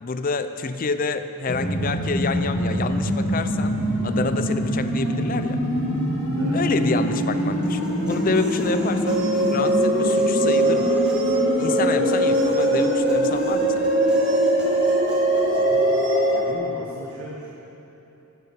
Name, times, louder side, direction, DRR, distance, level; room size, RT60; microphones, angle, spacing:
voice 1, 0.0-3.7 4.0-5.6 6.5-7.8 8.1-9.2 9.5-10.9 11.6-13.9, left 4 dB, 40° left, 10 dB, 0.4 m, -28 dB
sound 1, 1.5-16.4, equal, 60° left, 2.2 m, -24 dB
Human voice, 7.6-15.6, equal, 5° right, 1.0 m, -40 dB
sound 2, 9.1-16.5, right 1 dB, 20° right, 0.5 m, -22 dB
voice 2, 15.4-15.9 16.3-17.5, right 1 dB, 65° right, -3 dB, 1.3 m, -37 dB
11.5 x 10.5 x 5.8 m, 3.0 s
head